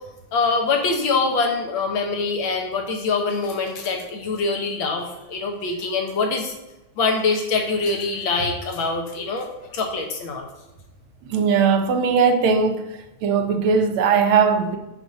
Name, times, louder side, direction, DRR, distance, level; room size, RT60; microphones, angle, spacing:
voice 1, 0.3-6.5 7.0-9.5 9.7-10.5, left 4 dB, 75° left, 2 dB, 1.9 m, -24 dB
voice 2, 11.3-12.8 13.2-14.8, right 5 dB, 85° right, 5 dB, 1.7 m, -19 dB
6.5 x 4.4 x 5.9 m, 0.96 s
omnidirectional pair, 2.2 m